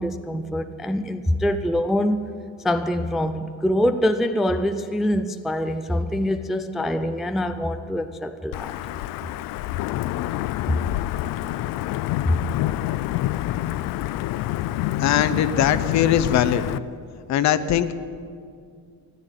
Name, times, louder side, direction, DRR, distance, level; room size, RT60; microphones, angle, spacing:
voice 1, 0.0-2.3 2.6-8.7 10.7-10.8 12.3-12.4, left 1 dB, ahead, 8 dB, 0.3 m, -24 dB
Wind / Thunder / Rain, 8.5-16.8, left 15 dB, 80° left, 0.5 m, -27 dB
voice 2, 15.0-16.6 17.3-17.9, left 10 dB, 55° left, 13 dB, 0.8 m, -20 dB
14.5 x 11.0 x 9.1 m, 2.2 s
cardioid pair, 165°, 33 cm